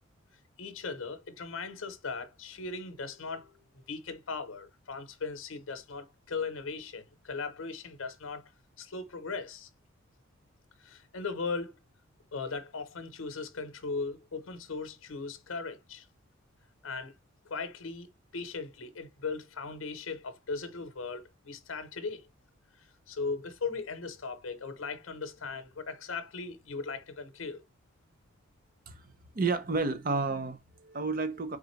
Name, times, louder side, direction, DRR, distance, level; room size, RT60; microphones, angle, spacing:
voice 1, 0.6-3.5 3.9-8.5 8.8-9.7 10.8-11.7 12.3-16.0 16.8-17.1 17.4-18.1 18.3-22.3 23.1-27.6, left 4 dB, 90° left, 0.8 m, -38 dB
voice 2, 28.9-31.6, right 3 dB, 45° right, 0.7 m, -31 dB
3.7 x 3.7 x 3.1 m
head